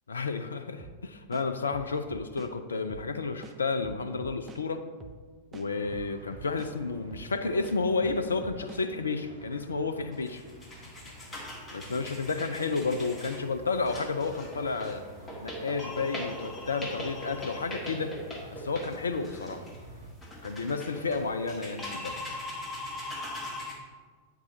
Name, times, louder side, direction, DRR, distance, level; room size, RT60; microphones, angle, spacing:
voice 1, 0.1-4.8 5.5-10.4 11.7-15.0 15.4-18.2 18.5-19.6 20.4-22.2, left 4 dB, 75° left, 9 dB, 0.4 m, -31 dB
sound 1, 0.8-1.0 1.3-2.5 2.9-3.1 3.4-4.6 5.0-5.2 5.5-6.7 7.1-7.3 7.6-8.8, right 5 dB, 25° right, 0.6 m, -47 dB
sound 2, 5.6-20.1, equal, 70° right, 1.0 m, -50 dB
sound 3, 10.1-23.7, left 1 dB, 15° left, 1.6 m, -40 dB
8.5 x 4.7 x 3.9 m, 1.5 s
figure-of-eight pair, 90°, 0 cm